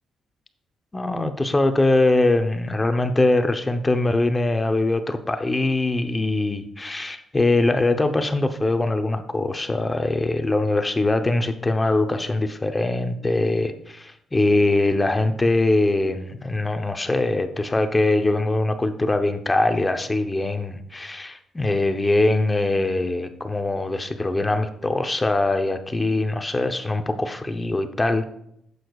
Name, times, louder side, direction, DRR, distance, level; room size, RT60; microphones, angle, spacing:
voice 1, 0.9-28.3, left 2 dB, 20° left, 7 dB, 0.7 m, -22 dB
11.0 x 8.0 x 2.4 m, 0.74 s
cardioid pair, 90°, 0 cm